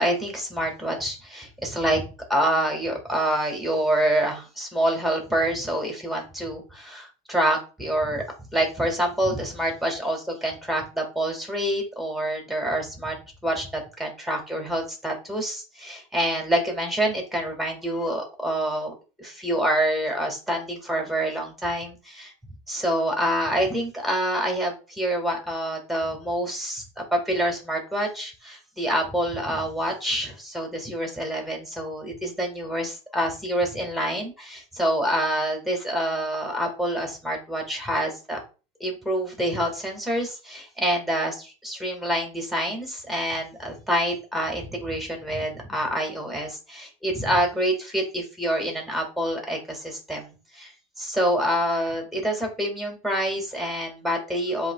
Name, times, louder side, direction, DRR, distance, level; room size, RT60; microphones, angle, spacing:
voice 1, 0.0-8.2 8.5-13.2 13.4-22.3 22.7-38.4 38.8-50.7 51.0-54.7, right 1 dB, ahead, 2 dB, 1.8 m, -27 dB
7.3 x 3.0 x 2.3 m, 0.33 s
supercardioid pair, 100°, 17 cm